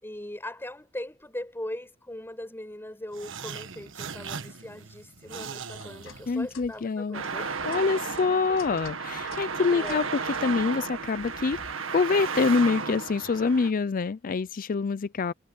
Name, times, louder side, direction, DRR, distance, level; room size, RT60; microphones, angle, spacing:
voice 1, 0.0-7.5 9.7-10.1, left 1 dB, 10° left, 5.9 m, -39 dB
sound 1, 3.1-6.8, right 6 dB, 70° right, 1.4 m, -40 dB
sound 2, 5.2-11.8, left 4 dB, 85° left, 7.1 m, -51 dB
voice 2, 6.3-7.2 7.7-10.1 10.4-11.6 11.9-15.3, left 4 dB, 45° left, 0.4 m, -26 dB
Traffic noise roadway noise, 7.1-13.7, right 5 dB, 90° right, 1.9 m, -33 dB
head